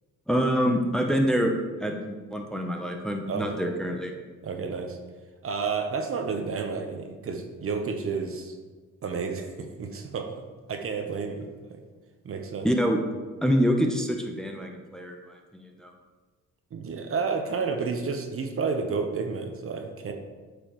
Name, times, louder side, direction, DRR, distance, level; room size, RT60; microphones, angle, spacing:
voice 1, 0.3-1.5 1.8-4.1 12.6-13.0 13.4-15.9, equal, ahead, 2 dB, 0.7 m, -26 dB
voice 2, 3.3-3.7 4.4-5.0 5.4-8.5 9.0-10.3 10.7-11.8 12.2-12.7 16.7-20.1, right 5 dB, 45° right, 5 dB, 0.8 m, -31 dB
8.7 x 5.0 x 3.1 m, 1.3 s
cardioid pair, 90°, 30 cm